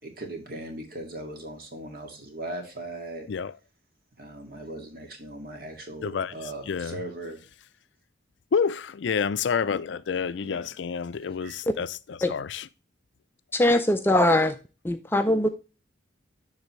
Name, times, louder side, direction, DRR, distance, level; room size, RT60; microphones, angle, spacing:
voice 1, 0.0-3.3 4.2-7.4 10.4-10.7 11.4-11.6, right 1 dB, 50° right, 2.0 m, -39 dB
voice 2, 6.0-6.3 6.7-7.0 8.5-12.7, left 6 dB, 75° left, 0.4 m, -28 dB
voice 3, 13.5-14.6 14.8-15.5, left 1 dB, 10° left, 0.4 m, -21 dB
12.0 x 4.0 x 3.1 m
head